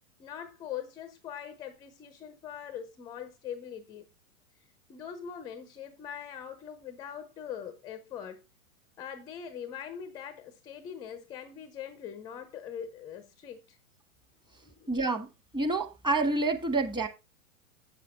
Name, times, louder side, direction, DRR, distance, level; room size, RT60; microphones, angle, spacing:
voice 1, 0.2-4.1 4.9-8.4 9.0-13.8 14.6-14.9, left 8 dB, 10° left, 0.4 m, -42 dB
voice 2, 14.9-15.3 15.5-17.1, right 3 dB, 10° right, 1.1 m, -28 dB
8.0 x 6.9 x 4.1 m
hypercardioid pair, 110°, 41 cm